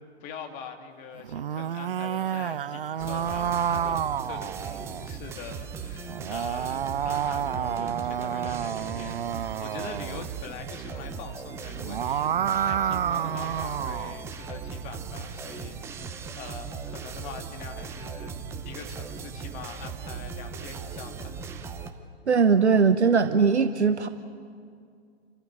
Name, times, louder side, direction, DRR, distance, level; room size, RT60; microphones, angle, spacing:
voice 1, 0.2-18.4 18.6-21.4, left 6 dB, 20° left, 5 dB, 1.9 m, -43 dB
sound 1, 1.2-5.1 6.1-10.3 11.7-14.2, right 9 dB, 55° right, 0.7 m, -29 dB
sound 2, 3.0-21.9, right 5 dB, 10° right, 0.7 m, -38 dB
voice 2, 22.3-24.1, right 5 dB, 75° right, 10 dB, 1.1 m, -20 dB
28.5 x 14.5 x 8.7 m, 2.2 s
figure-of-eight pair, 125°, 34 cm